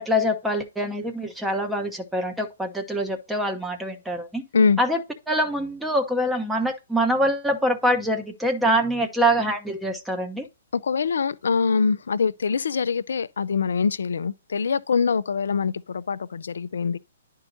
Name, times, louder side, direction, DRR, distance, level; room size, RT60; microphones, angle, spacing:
voice 1, 0.0-4.4 4.8-5.0 5.3-10.5, equal, 5° right, 0.9 m, -24 dB
voice 2, 10.7-17.0, left 5 dB, 70° left, 0.5 m, -24 dB
11.0 x 4.6 x 2.7 m
figure-of-eight pair, 125°, 0 cm